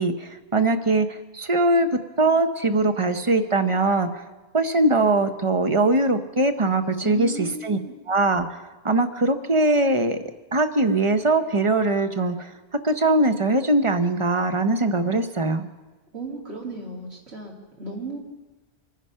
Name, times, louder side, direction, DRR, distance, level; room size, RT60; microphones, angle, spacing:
voice 1, 0.0-1.9 2.2-4.2 4.5-7.8 8.1-10.2 10.5-12.5 12.8-15.6, right 2 dB, 30° right, 8 dB, 0.8 m, -21 dB
voice 2, 7.0-8.0 16.1-18.2, right 3 dB, 70° right, -3 dB, 2.6 m, -35 dB
24.5 x 10.0 x 5.6 m, 1.2 s
omnidirectional pair, 1.1 m